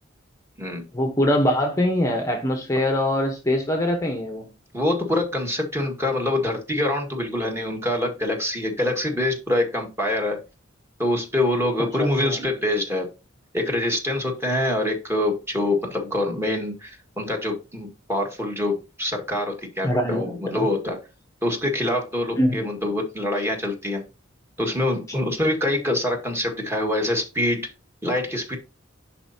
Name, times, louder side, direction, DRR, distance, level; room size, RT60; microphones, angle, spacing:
voice 1, 0.9-4.5 12.0-12.4 19.8-20.3 20.6-20.7 22.4-22.6, left 1 dB, 15° left, 0.9 m, -23 dB
voice 2, 4.7-10.4 11.0-13.1 13.5-21.0 21.4-24.0 24.6-27.7 28.0-28.6, left 1 dB, 15° right, 1.8 m, -25 dB
11.0 x 4.3 x 2.8 m
head